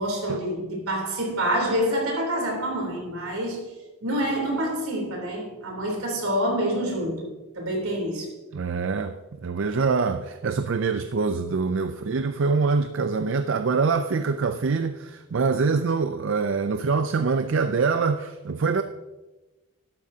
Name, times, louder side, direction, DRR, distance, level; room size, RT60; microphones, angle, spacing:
voice 1, 0.0-3.7 4.0-8.3, equal, 75° right, 3.3 m, -27 dB
voice 2, 8.5-18.8, right 4 dB, 60° right, 0.4 m, -24 dB
12.5 x 11.5 x 2.8 m
head